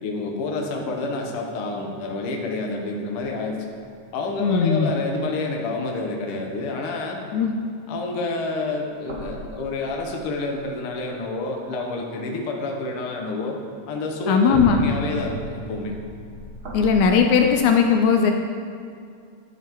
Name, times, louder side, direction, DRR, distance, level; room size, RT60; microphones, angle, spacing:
voice 1, 0.0-3.6 4.1-7.2 7.9-13.6 13.9-15.9, left 2 dB, 65° left, 1 dB, 1.5 m, -28 dB
sound 1, 3.1-4.5 4.9-5.7 8.7-10.7 11.5-12.6 13.2-13.3 14.0-17.6, right 1 dB, 70° right, 0.9 m, -36 dB
voice 2, 4.4-4.9 7.3-7.5 14.3-14.8 16.7-18.3, left 6 dB, 80° left, 4 dB, 1.9 m, -18 dB
11.5 x 5.6 x 3.0 m, 2.3 s
omnidirectional pair, 3.5 m